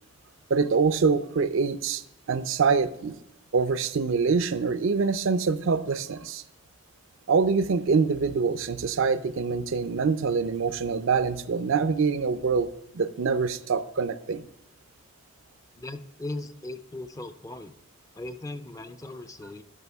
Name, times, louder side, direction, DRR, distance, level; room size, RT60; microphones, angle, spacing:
voice 1, 0.5-2.0 2.3-3.2 3.5-6.4 7.3-12.7 12.9-14.4, right 5 dB, 60° right, 12 dB, 0.5 m, -25 dB
voice 2, 15.8-17.7 18.1-19.6, left 2 dB, 15° left, 9 dB, 0.4 m, -38 dB
12.5 x 5.6 x 3.5 m, 0.84 s
head